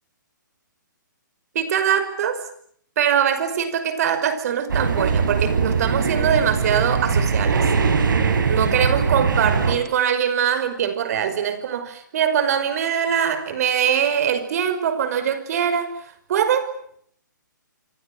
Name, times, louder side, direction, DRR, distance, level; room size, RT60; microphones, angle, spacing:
voice 1, 1.5-2.4 3.0-7.6 8.5-15.9 16.3-16.8, right 8 dB, 50° right, 12 dB, 5.5 m, -22 dB
sound 1, 4.7-9.7, right 5 dB, 75° right, 7.4 m, -21 dB
28.5 x 24.5 x 7.9 m, 0.65 s
hypercardioid pair, 145°, 11 cm